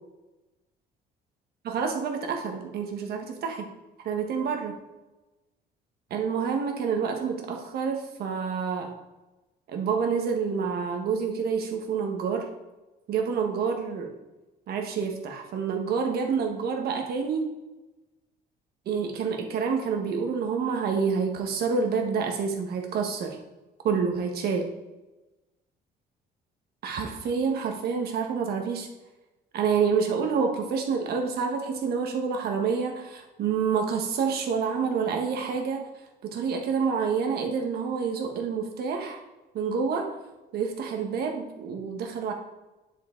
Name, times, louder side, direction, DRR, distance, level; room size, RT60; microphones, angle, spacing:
voice 1, 1.6-3.7 4.0-4.8 6.1-9.0 9.7-12.5 13.1-14.2 14.7-17.5 18.8-23.4 23.8-24.7 26.8-28.9 29.5-35.9 36.2-39.2 39.5-40.2 40.5-42.3, right 6 dB, 60° right, 3 dB, 1.3 m, -28 dB
9.4 x 5.6 x 3.8 m, 1.1 s
cardioid pair, 135°, 18 cm